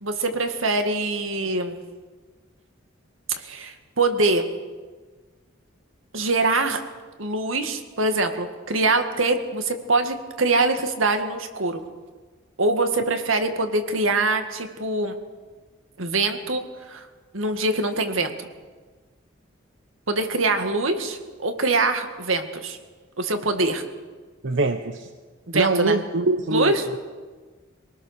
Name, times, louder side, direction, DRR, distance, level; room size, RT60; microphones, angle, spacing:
voice 1, 0.0-1.8 3.4-4.5 6.1-6.8 7.2-11.8 12.6-15.2 16.0-17.1 17.3-18.5 20.1-22.8 23.2-23.8 25.5-26.0 26.5-26.9, right 2 dB, 85° right, 7 dB, 2.1 m, -24 dB
voice 2, 24.4-25.1 25.5-26.7, right 2 dB, 65° right, 8 dB, 0.9 m, -23 dB
24.5 x 19.0 x 6.6 m, 1.4 s
head